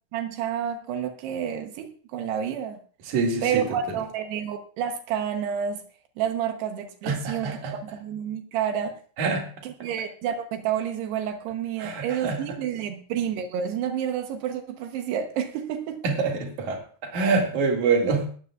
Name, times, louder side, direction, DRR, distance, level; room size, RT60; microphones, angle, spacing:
voice 1, 0.1-2.8 3.4-5.8 6.2-9.0 9.6-16.0, right 8 dB, 80° right, 6 dB, 3.1 m, -29 dB
voice 2, 3.1-3.6 7.0-7.8 9.2-9.5 11.8-12.6 16.0-18.3, right 4 dB, 55° right, 1 dB, 3.2 m, -25 dB
19.0 x 13.5 x 2.4 m, 0.43 s
omnidirectional pair, 4.7 m